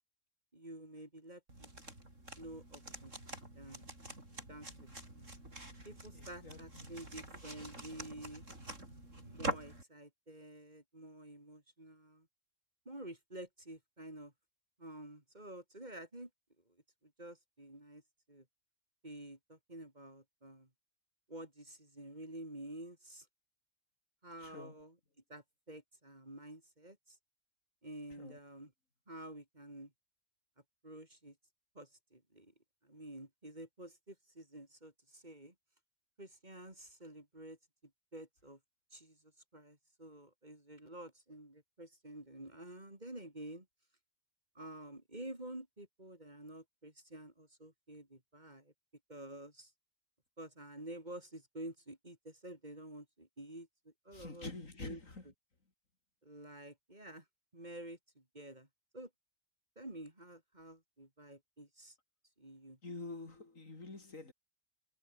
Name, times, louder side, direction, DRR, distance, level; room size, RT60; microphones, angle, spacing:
voice 1, 0.5-1.7 2.4-3.2 3.5-3.9 4.5-5.3 5.8-8.4 9.2-12.3 12.8-14.3 14.8-16.3 17.0-18.0 18.3-18.4 19.0-20.7 21.3-23.3 24.2-24.9 25.3-27.2 27.8-28.7 29.1-29.9 30.8-31.3 31.7-32.5 32.8-35.5 36.2-37.6 38.1-38.6 38.9-39.2 39.5-43.7 44.5-48.7 49.1-49.7 50.4-54.5 54.8-55.0 56.2-57.2 57.5-58.7 58.9-59.1 59.8-61.9 62.4-62.8, right 1 dB, 30° right, 4.7 m, -50 dB
sound 1, 1.5-9.8, right 1 dB, 60° right, 8.5 m, -46 dB
voice 2, 6.1-6.9 24.4-24.8 28.1-28.4 54.1-55.3 62.8-64.3, left 3 dB, 65° left, 3.9 m, -47 dB
omnidirectional pair, 1.5 m